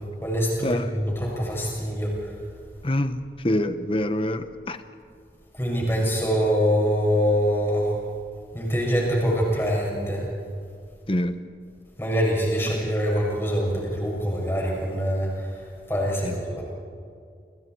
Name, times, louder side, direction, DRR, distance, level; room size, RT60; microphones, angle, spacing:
voice 1, 0.2-2.1 5.6-7.9 8.5-10.2 12.0-15.5 15.9-16.6, equal, 15° left, -3 dB, 7.0 m, -24 dB
voice 2, 2.8-4.8 11.1-11.3 16.2-16.3, left 1 dB, 30° left, 10 dB, 1.0 m, -25 dB
29.5 x 27.5 x 4.7 m, 2.3 s
head